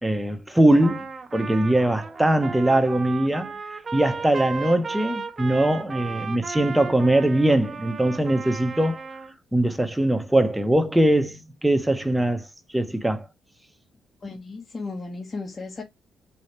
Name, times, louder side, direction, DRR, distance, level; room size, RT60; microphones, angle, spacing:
voice 1, 0.0-3.5 3.9-9.0 9.5-12.5 12.7-13.3, right 1 dB, 5° right, 0.9 m, -21 dB
Trumpet, 0.8-9.3, right 4 dB, 35° right, 0.8 m, -35 dB
voice 2, 14.2-15.8, left 3 dB, 35° left, 1.4 m, -35 dB
5.0 x 2.3 x 4.3 m
cardioid pair, 90°, 0 cm